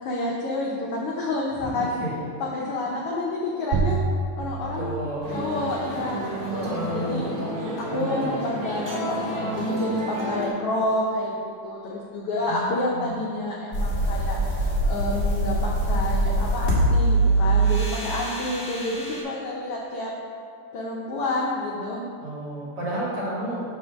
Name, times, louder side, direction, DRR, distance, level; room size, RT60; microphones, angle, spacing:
voice 1, 0.0-1.9 2.5-4.0 4.4-4.9 5.3-7.2 7.7-20.1 20.7-22.0, left 2 dB, 75° left, -3 dB, 1.3 m, -29 dB
voice 2, 1.6-2.1 4.8-5.3 6.5-8.4 12.5-13.2 22.2-23.6, equal, 50° right, -8 dB, 2.6 m, -32 dB
sound 1, 3.7-8.8, right 4 dB, 85° right, 1.6 m, -31 dB
sound 2, 5.2-10.5, right 1 dB, 25° right, 1.6 m, -30 dB
sound 3, 13.7-19.2, right 2 dB, 40° left, 1.2 m, -23 dB
8.5 x 3.2 x 6.2 m, 2.4 s
omnidirectional pair, 3.5 m